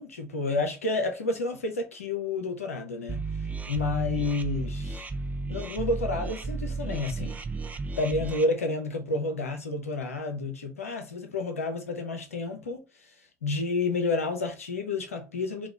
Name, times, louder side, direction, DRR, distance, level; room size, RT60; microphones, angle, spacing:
voice 1, 0.0-3.2 3.7-5.1 5.5-7.3 7.9-13.1 13.4-15.7, left 3 dB, 85° left, 0.6 m, -30 dB
sound 1, 3.1-8.4, right 3 dB, 20° right, 0.4 m, -33 dB
2.9 x 2.2 x 3.4 m
figure-of-eight pair, 55°, 7 cm